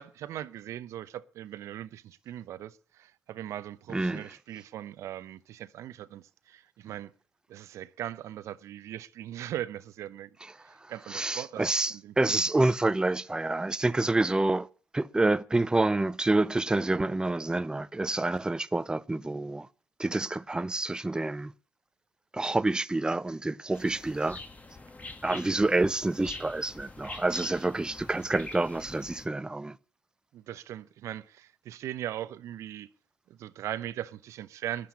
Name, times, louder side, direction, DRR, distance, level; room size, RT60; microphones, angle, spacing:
voice 1, 0.0-7.1 7.5-10.3 10.6-12.1 25.3-25.4 30.3-32.9 33.3-34.9, right 12 dB, 65° right, 0.7 m, -39 dB
voice 2, 3.9-4.3 10.8-14.7 14.9-19.7 20.0-21.5 22.3-24.4 25.2-29.8, right 2 dB, 15° right, 0.6 m, -28 dB
sound 1, 23.7-29.3, left 2 dB, 25° left, 2.1 m, -45 dB
13.0 x 10.0 x 8.3 m
hypercardioid pair, 45°, 5 cm